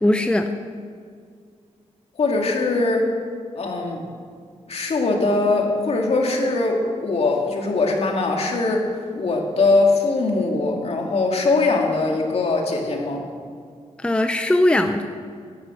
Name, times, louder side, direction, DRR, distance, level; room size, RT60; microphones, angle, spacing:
voice 1, 0.0-0.5 14.0-15.0, left 1 dB, 10° left, 6 dB, 0.6 m, -19 dB
voice 2, 2.2-3.1 3.5-4.0 4.7-8.9 9.1-13.3, left 3 dB, 60° left, 1 dB, 2.3 m, -21 dB
11.0 x 10.0 x 7.8 m, 2.1 s
wide cardioid pair, 120°, 12 cm